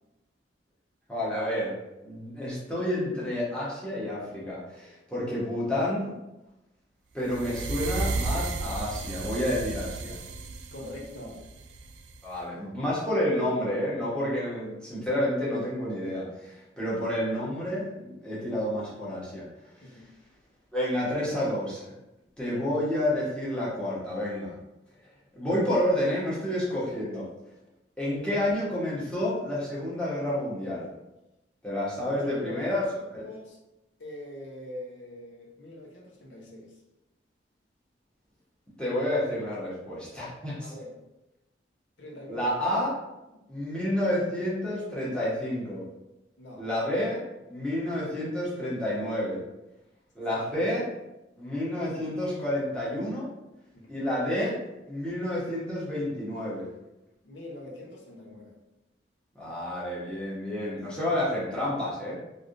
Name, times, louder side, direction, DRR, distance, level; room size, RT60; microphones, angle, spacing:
voice 1, 1.1-1.7 2.0-6.1 7.1-10.1 12.2-19.4 20.7-21.8 22.4-24.5 25.3-27.3 28.0-30.9 31.6-32.8 33.1-33.2 38.8-40.7 42.3-42.9 43.5-45.8 46.6-47.2 47.5-49.4 50.1-50.8 51.4-53.3 53.9-54.6 54.9-56.7 59.3-62.2, left 1 dB, 5° left, -8 dB, 1.1 m, -29 dB
sound 1, 7.2-12.3, right 3 dB, 70° right, 0.3 m, -33 dB
voice 2, 10.7-11.4 19.8-20.1 22.4-22.7 32.1-33.6 34.0-36.8 40.6-41.0 42.0-42.5 43.3-43.5 46.4-46.7 50.3-50.4 53.7-54.1 57.2-58.6, left 1 dB, 85° left, -2 dB, 0.8 m, -43 dB
3.4 x 2.6 x 2.5 m, 0.97 s
head